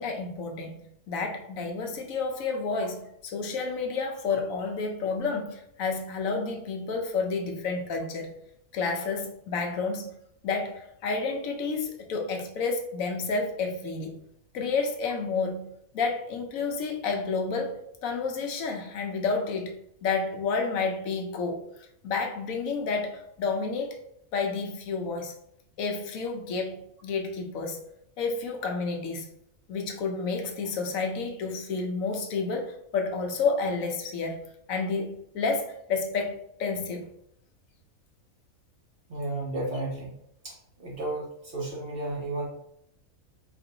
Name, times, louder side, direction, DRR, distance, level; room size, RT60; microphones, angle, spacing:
voice 1, 0.0-8.3 8.7-10.1 10.4-14.2 14.5-15.7 15.9-19.8 20.0-21.6 22.0-24.0 24.3-25.3 25.8-27.8 28.2-29.3 29.7-34.4 34.7-37.1, left 4 dB, 75° left, 3 dB, 1.0 m, -30 dB
voice 2, 39.1-40.1 40.4-42.5, right 2 dB, 45° right, -2 dB, 1.0 m, -33 dB
4.5 x 2.5 x 2.7 m, 0.73 s
omnidirectional pair, 1.5 m